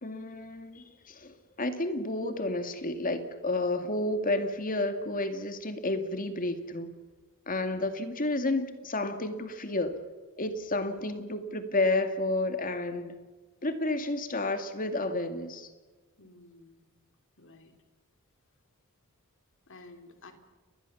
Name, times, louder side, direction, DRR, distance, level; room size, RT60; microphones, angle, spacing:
voice 1, 0.0-7.0 7.5-10.0 10.4-13.2 13.6-15.7, left 2 dB, 40° left, 8 dB, 2.3 m, -31 dB
voice 2, 16.2-16.8 17.4-17.8 19.7-20.3, left 2 dB, 60° left, 7 dB, 3.5 m, -52 dB
29.5 x 21.0 x 7.2 m, 1.3 s
head